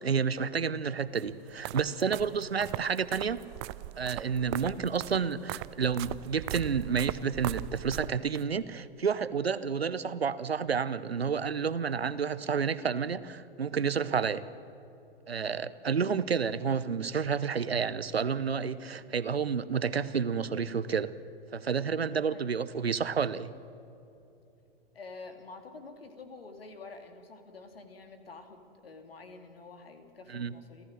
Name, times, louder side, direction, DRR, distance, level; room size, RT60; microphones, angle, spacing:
voice 1, 0.0-3.4 4.0-14.5 15.3-21.1 21.5-23.5 30.3-30.5, right 6 dB, 80° right, 16 dB, 0.9 m, -30 dB
sound 1, 1.1-8.4, right 18 dB, 30° right, 0.3 m, -39 dB
voice 2, 24.9-30.8, left 3 dB, 75° left, 7 dB, 2.4 m, -48 dB
30.0 x 13.5 x 6.3 m, 2.8 s
figure-of-eight pair, 100°, 30 cm